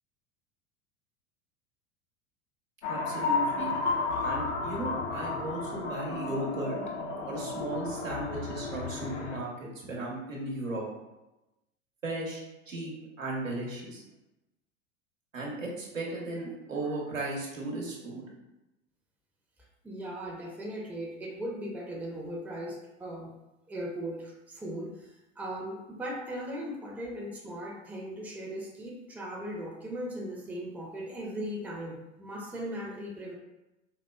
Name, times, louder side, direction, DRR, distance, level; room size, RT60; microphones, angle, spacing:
sound 1, 2.8-9.4, left 4 dB, 65° left, 0.7 m, -32 dB
voice 1, 2.9-3.7 4.2-6.8 7.2-10.8 12.0-14.0 15.3-18.3, right 2 dB, 90° right, -3 dB, 0.9 m, -36 dB
voice 2, 19.8-23.3 23.7-24.9 25.4-33.3, equal, 5° right, -2 dB, 0.5 m, -38 dB
4.2 x 2.1 x 2.2 m, 0.95 s
figure-of-eight pair, 85°, 38 cm